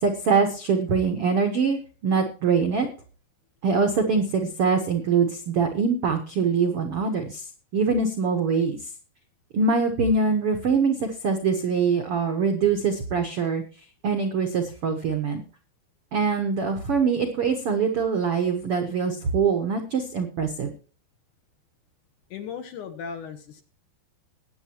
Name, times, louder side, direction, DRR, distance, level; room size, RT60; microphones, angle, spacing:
voice 1, 0.0-2.9 3.6-7.4 7.7-8.8 9.5-13.6 14.0-15.4 16.1-20.7, right 5 dB, 75° right, 5 dB, 1.3 m, -23 dB
voice 2, 22.3-23.6, left 6 dB, 65° left, 7 dB, 2.2 m, -36 dB
21.5 x 8.6 x 3.0 m, 0.37 s
omnidirectional pair, 4.6 m